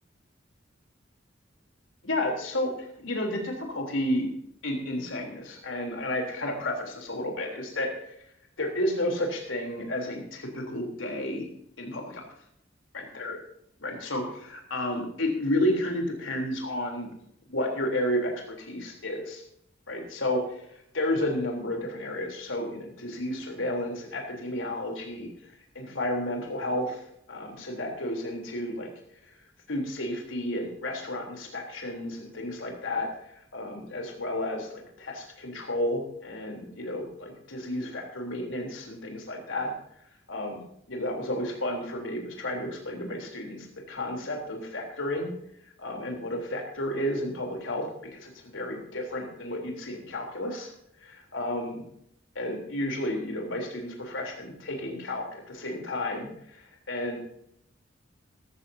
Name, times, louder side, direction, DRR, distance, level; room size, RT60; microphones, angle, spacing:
voice 1, 2.0-4.3 4.6-7.9 8.6-11.5 11.8-12.2 13.1-13.4 13.8-17.1 17.5-19.4 19.9-20.6 20.9-27.0 27.3-28.9 29.7-33.1 33.5-39.7 40.3-40.6 40.9-45.3 45.8-47.9 48.1-50.7 51.0-51.8 52.4-57.2, left 1 dB, 85° left, 1 dB, 3.6 m, -32 dB
17.5 x 15.0 x 2.8 m, 0.72 s
head